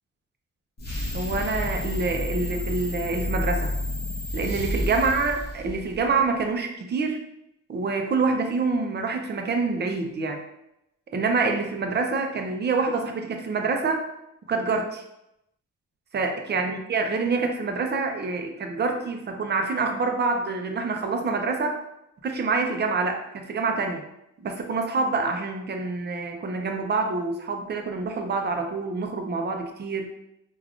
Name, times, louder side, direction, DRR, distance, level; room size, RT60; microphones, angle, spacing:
Strange teleport sound, 0.8-6.2, left 1 dB, 35° left, 0.9 m, -30 dB
voice 1, 1.1-3.8 4.3-7.2 7.7-10.4 11.1-14.1 14.5-15.0 16.1-21.8 22.2-24.0 24.4-30.1, right 4 dB, 35° right, 4 dB, 0.4 m, -26 dB
3.4 x 2.3 x 2.4 m, 0.84 s
wide cardioid pair, 120°, 30 cm